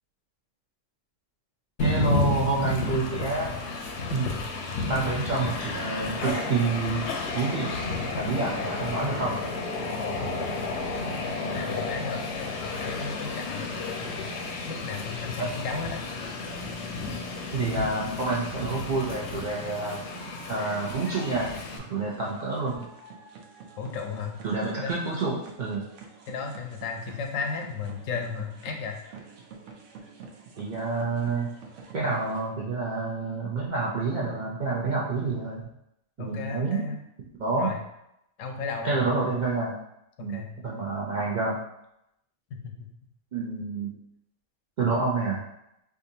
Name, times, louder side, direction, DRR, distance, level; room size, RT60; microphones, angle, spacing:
Train, 1.8-21.8, left 3 dB, 65° left, 0.8 m, -32 dB
voice 1, 1.8-3.5 4.1-4.3 4.9-7.7 8.2-9.4 15.4-15.5 17.5-20.0 20.5-21.5 21.9-22.8 24.4-25.8 30.6-31.5 31.9-35.7 36.2-36.9 37.4-37.7 38.8-39.7 40.2-41.6 43.3-43.9 44.8-45.4, right 3 dB, 55° right, -4 dB, 0.5 m, -28 dB
voice 2, 11.5-14.3 14.7-16.0 23.8-24.4 24.8-24.9 26.3-29.0 36.2-37.0 37.6-37.8 38.4-39.3 40.2-40.5 42.5-42.9, left 5 dB, 85° left, 3 dB, 1.0 m, -35 dB
sound 1, 18.3-32.5, right 5 dB, 70° right, 0.9 m, -48 dB
4.6 x 2.5 x 2.7 m, 0.81 s
omnidirectional pair, 1.3 m